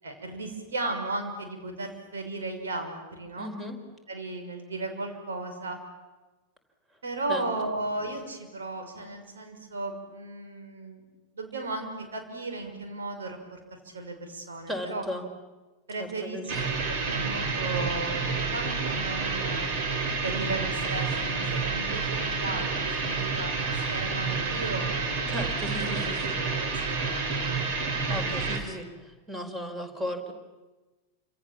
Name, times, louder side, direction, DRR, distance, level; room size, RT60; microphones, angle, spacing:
voice 1, 0.0-3.5 4.1-5.8 7.0-11.0 11.3-15.0 15.9-16.4 16.9-19.7 20.2-23.6 23.9-24.9 25.8-27.6, right 2 dB, 70° right, 5 dB, 6.0 m, -35 dB
voice 2, 3.4-3.8 7.3-7.4 14.7-15.3 16.0-16.6 25.3-26.4 28.0-30.3, equal, 15° right, 7 dB, 5.0 m, -35 dB
sound 1, 16.5-28.6, right 4 dB, 45° right, 4.7 m, -29 dB
30.0 x 27.0 x 7.4 m, 1.2 s
figure-of-eight pair, 90°, 0 cm